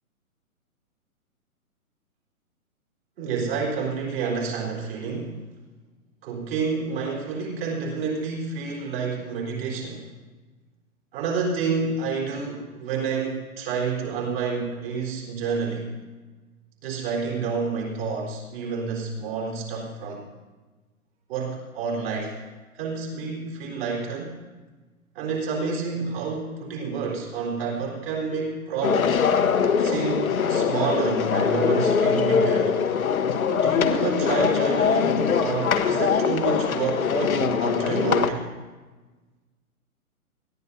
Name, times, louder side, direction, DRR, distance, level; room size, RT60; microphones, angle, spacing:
voice 1, 3.2-5.4 6.2-10.1 11.1-15.9 16.8-20.3 21.3-22.4 22.7-24.4 25.1-29.2 29.8-32.7 33.5-38.4, right 5 dB, 40° right, -2 dB, 4.1 m, -29 dB
sound 1, 28.8-38.3, left 6 dB, 70° left, 1.1 m, -22 dB
20.5 x 14.5 x 2.7 m, 1.3 s
figure-of-eight pair, 130°, 44 cm